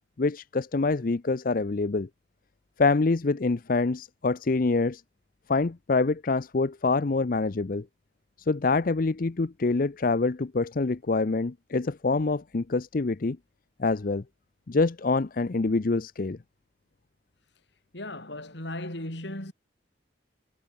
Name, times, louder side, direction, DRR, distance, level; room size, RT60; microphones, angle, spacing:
voice 1, 0.2-2.1 2.8-5.0 5.5-7.9 8.4-13.4 13.8-14.2 14.7-16.4, left 3 dB, 45° left, 0.6 m, -26 dB
voice 2, 17.9-19.5, left 1 dB, 65° left, 5.7 m, -36 dB
head